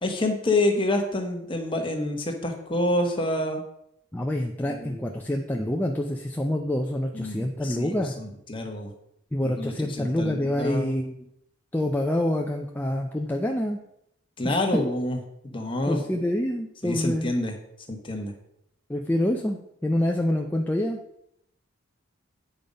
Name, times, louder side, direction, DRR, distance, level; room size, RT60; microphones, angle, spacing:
voice 1, 0.0-3.6 4.7-5.0 7.1-8.9 9.4-10.9 14.4-15.2 15.4-16.0 16.8-17.5 17.9-18.3, left 1 dB, 25° left, 3 dB, 1.3 m, -27 dB
voice 2, 4.1-8.1 9.3-11.3 11.7-13.8 14.4-14.6 15.9-17.3 18.9-21.0, left 1 dB, 10° left, 1 dB, 0.5 m, -27 dB
8.8 x 5.5 x 5.1 m, 0.76 s
head